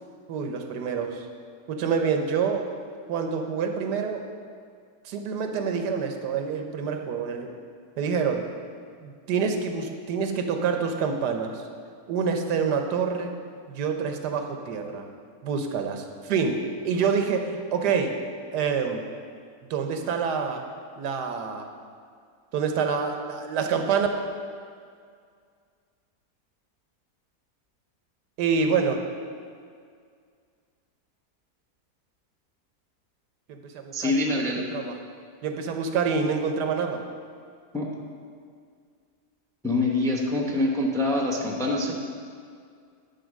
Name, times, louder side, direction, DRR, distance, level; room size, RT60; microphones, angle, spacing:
voice 1, 0.3-1.3 1.7-2.7 3.1-4.2 5.0-7.5 8.0-8.5 9.0-11.6 12.1-13.3 13.7-15.0 15.4-18.2 18.5-19.1 19.7-20.7 21.0-21.7 22.5-24.1 28.4-29.1 33.5-34.2 34.7-35.0 35.4-37.0, right 6 dB, 90° right, 5 dB, 1.4 m, -27 dB
voice 2, 33.9-34.6 37.7-37.9 39.6-41.9, left 2 dB, 5° left, 0 dB, 0.6 m, -25 dB
10.5 x 4.4 x 6.4 m, 2.2 s
omnidirectional pair, 1.7 m